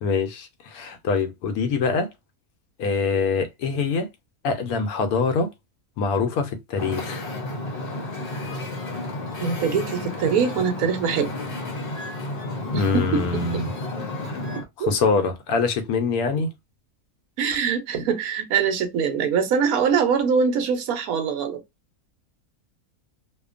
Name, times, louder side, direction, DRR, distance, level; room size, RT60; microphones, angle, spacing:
voice 1, 0.0-2.1 2.8-4.1 4.4-5.5 6.0-7.3 12.7-13.7 14.8-16.5, left 4 dB, 85° left, 1.1 m, -24 dB
Wind / Ocean, 6.8-14.6, left 2 dB, 50° left, 0.8 m, -31 dB
voice 2, 9.4-11.3 12.7-13.6 14.8-14.9 17.4-21.6, right 6 dB, 80° right, 1.1 m, -23 dB
2.8 x 2.2 x 2.4 m
omnidirectional pair, 1.5 m